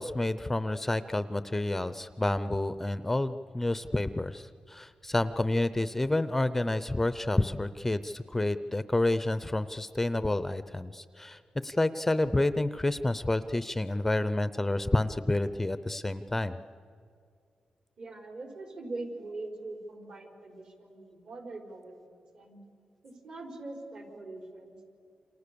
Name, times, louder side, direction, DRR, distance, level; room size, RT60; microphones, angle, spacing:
voice 1, 0.0-16.6, left 2 dB, 10° left, 12 dB, 0.6 m, -29 dB
voice 2, 18.0-22.6 23.0-24.8, right 2 dB, 55° right, 3 dB, 4.9 m, -42 dB
29.0 x 26.5 x 6.9 m, 2.4 s
wide cardioid pair, 130°, 2 cm